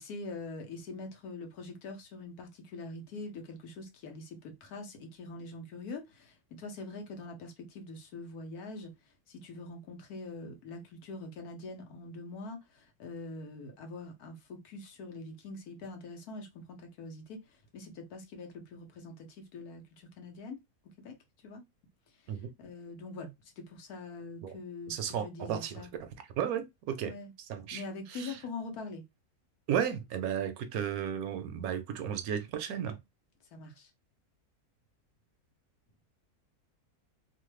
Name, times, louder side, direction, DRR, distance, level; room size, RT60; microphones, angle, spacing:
voice 1, 0.0-20.6 20.8-21.6 22.1-25.9 27.0-27.3 27.7-29.1 33.5-33.9, left 3 dB, 80° left, 1.3 m, -44 dB
voice 2, 24.9-26.1 26.4-27.1 27.5-27.8 28.1-28.3 29.7-33.0, right 8 dB, 75° right, 1.0 m, -34 dB
3.1 x 2.1 x 3.1 m
omnidirectional pair, 1.6 m